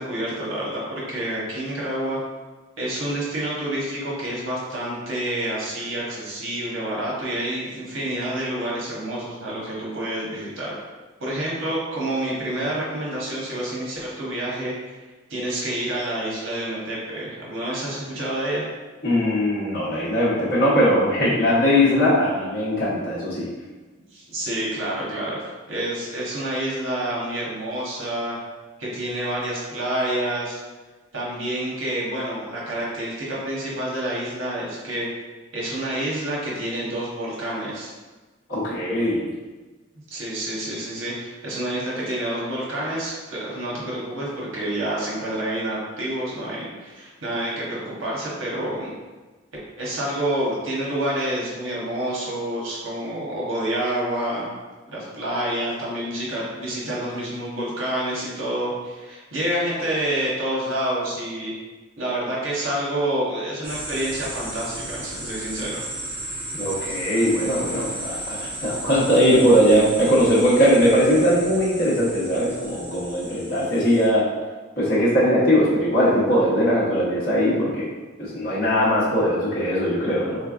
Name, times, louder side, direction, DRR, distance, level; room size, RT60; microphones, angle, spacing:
voice 1, 0.0-2.2 2.8-10.7 11.2-14.7 15.3-18.7 24.1-25.4 25.7-28.3 28.8-30.6 31.1-35.1 35.5-37.9 40.1-48.9 49.8-54.5 54.9-61.5 62.0-65.8 66.9-67.0, right 1 dB, 80° right, -5 dB, 1.1 m, -28 dB
voice 2, 19.0-23.5 38.5-39.3 66.5-74.3 74.8-77.9 78.2-80.4, equal, 45° left, -9 dB, 1.0 m, -20 dB
sound 1, 63.6-74.1, right 1 dB, 30° right, 0.8 m, -34 dB
3.7 x 3.3 x 2.5 m, 1.3 s
head